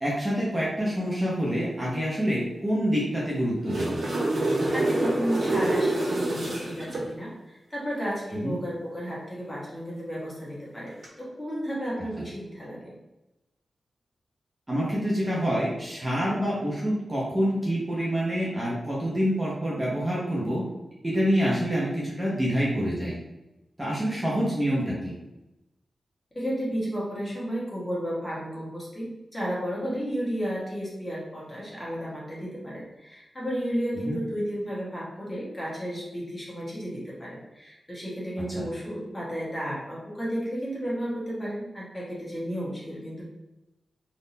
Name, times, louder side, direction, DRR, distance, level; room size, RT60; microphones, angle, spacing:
voice 1, 0.0-4.0 8.3-8.6 14.7-20.6 21.0-23.2 23.8-25.1 34.0-34.2 38.5-38.6, equal, 20° right, -6 dB, 0.9 m, -27 dB
sound 1, 3.4-7.0 10.9-11.0, right 2 dB, 75° right, 1.5 m, -26 dB
voice 2, 4.7-12.9 26.3-43.2, equal, 20° left, -6 dB, 1.3 m, -33 dB
3.6 x 2.7 x 2.7 m, 0.97 s
wide cardioid pair, 110°, 0 cm